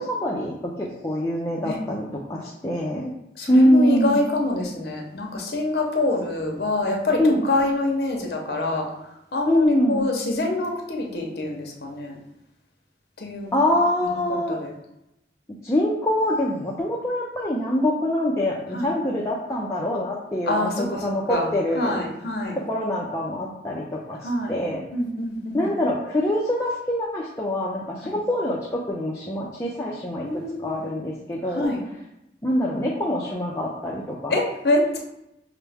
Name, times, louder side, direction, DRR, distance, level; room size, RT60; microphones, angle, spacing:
voice 1, 0.0-3.1 3.5-4.2 7.2-7.4 9.5-10.1 13.5-14.6 15.6-22.0 22.6-24.8 25.5-30.3 30.6-31.7 32.4-34.3, left 1 dB, 15° left, -4 dB, 0.4 m, -24 dB
voice 2, 3.4-8.9 9.3-12.2 13.2-13.5 14.0-14.8 18.7-18.9 20.5-22.6 24.2-24.5 24.9-25.7 28.0-28.2 30.2-30.9 31.5-31.8 34.3-35.0, left 2 dB, 60° left, 1 dB, 0.8 m, -26 dB
5.7 x 2.1 x 3.4 m, 0.85 s
head